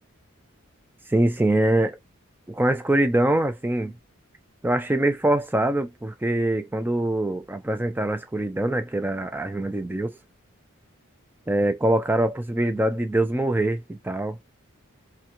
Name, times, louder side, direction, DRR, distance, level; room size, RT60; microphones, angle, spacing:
voice 1, 1.1-2.0 2.5-3.9 4.6-10.2 11.5-14.4, right 1 dB, 10° right, 0.4 m, -23 dB
3.5 x 2.2 x 2.9 m
head